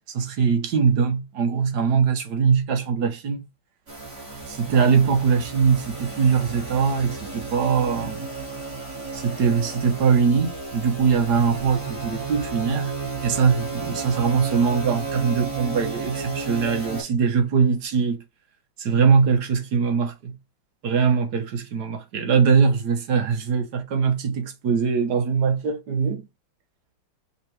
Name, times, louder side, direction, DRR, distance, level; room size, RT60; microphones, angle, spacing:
voice 1, 0.1-3.5 4.5-8.3 9.1-12.9 13.2-18.2 18.8-20.3 20.8-26.3, right 6 dB, 65° right, 1.3 m, -22 dB
sound 1, 3.9-17.0, right 4 dB, 40° right, 2.8 m, -33 dB
5.5 x 2.9 x 3.2 m
omnidirectional pair, 2.1 m